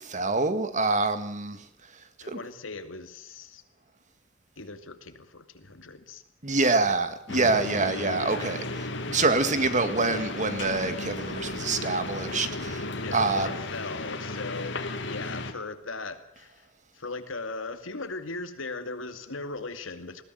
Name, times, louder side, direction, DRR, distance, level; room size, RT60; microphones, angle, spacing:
voice 1, 0.0-1.6 2.3-2.4 6.4-12.9 13.1-13.5, right 3 dB, 40° right, 10 dB, 2.0 m, -26 dB
voice 2, 2.2-3.6 4.6-6.2 6.8-7.0 13.0-16.7 16.9-20.2, left 3 dB, 85° left, 8 dB, 2.5 m, -38 dB
sound 1, 7.3-15.5, left 2 dB, 65° left, 2.7 m, -34 dB
21.0 x 16.5 x 9.4 m, 0.71 s
head